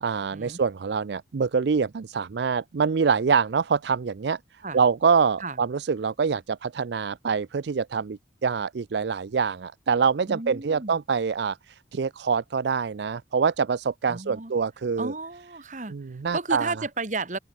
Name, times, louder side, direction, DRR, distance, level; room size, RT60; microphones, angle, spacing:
voice 1, 0.0-4.4 4.7-15.1 15.9-16.7, right 5 dB, 65° right, 0.4 m, -25 dB
voice 2, 10.3-11.0 14.1-14.5 15.0-15.9 16.3-17.4, right 3 dB, 40° right, 1.9 m, -33 dB
open air
head